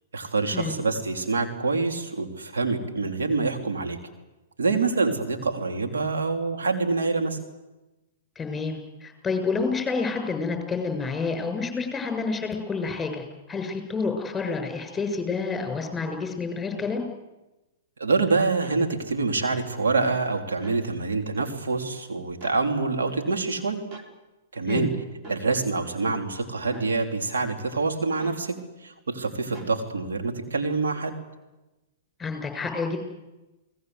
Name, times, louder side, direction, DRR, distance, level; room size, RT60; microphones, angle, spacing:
voice 1, 0.1-4.0 4.6-7.4 18.0-23.8 24.5-24.9 25.3-31.2, right 3 dB, 80° right, 4 dB, 3.6 m, -26 dB
voice 2, 8.3-17.0 24.7-24.9 32.2-33.1, left 4 dB, 10° left, 6 dB, 6.7 m, -29 dB
sound 1, 18.6-18.8 20.5-20.8 22.4-22.6 23.9-24.1 25.2-25.4 26.7-26.9 28.2-28.4 29.5-29.8, right 2 dB, 35° right, 4.4 m, -43 dB
29.5 x 19.0 x 8.1 m, 1.1 s
hypercardioid pair, 115°, 0 cm